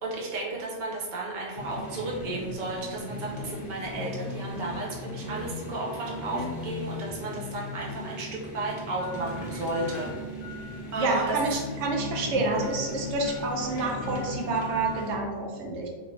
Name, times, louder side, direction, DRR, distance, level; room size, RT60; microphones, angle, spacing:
voice 1, 0.0-8.3 8.5-10.1 10.9-11.4, right 2 dB, 50° right, -3 dB, 0.8 m, -33 dB
sound 1, 1.6-15.2, left 2 dB, 60° left, 0.7 m, -37 dB
voice 2, 11.0-15.9, right 2 dB, 90° right, 0 dB, 0.9 m, -28 dB
2.6 x 2.6 x 3.0 m, 1.3 s
omnidirectional pair, 1.1 m